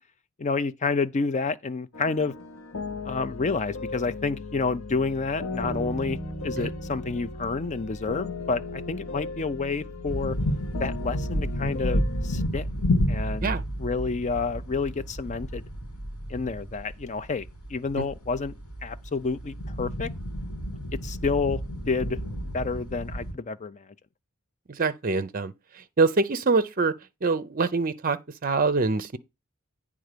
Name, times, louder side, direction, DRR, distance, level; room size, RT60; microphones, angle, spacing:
voice 1, 0.4-2.3 3.1-6.2 6.4-10.4 10.8-12.7 13.1-13.5 13.8-15.7 16.3-17.4 17.7-18.5 18.8-20.1 21.0-21.6 21.9-22.2 22.5-23.8, left 4 dB, 35° left, 0.5 m, -29 dB
sound 1, 1.9-12.5, left 3 dB, 65° left, 0.8 m, -37 dB
Bass guitar, 5.6-11.9, right 2 dB, 5° right, 1.1 m, -43 dB
sound 2, 10.1-23.3, equal, 85° left, 2.6 m, -31 dB
voice 2, 24.7-25.5 26.0-26.9 27.2-29.2, right 4 dB, 40° right, 0.6 m, -24 dB
9.2 x 3.6 x 6.6 m
head